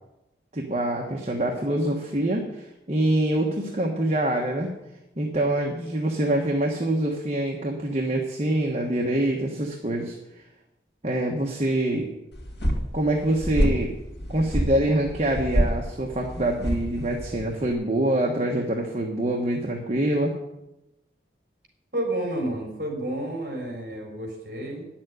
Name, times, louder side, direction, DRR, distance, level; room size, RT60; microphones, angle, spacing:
voice 1, 0.5-4.7 5.2-10.1 11.0-12.1 12.9-13.9 14.3-20.3, right 1 dB, 35° right, 0 dB, 1.3 m, -25 dB
sound 1, 12.3-17.7, equal, 70° left, 2.6 m, -27 dB
voice 2, 21.9-24.9, right 1 dB, 50° right, 1 dB, 4.2 m, -30 dB
9.7 x 7.5 x 9.2 m, 0.92 s
head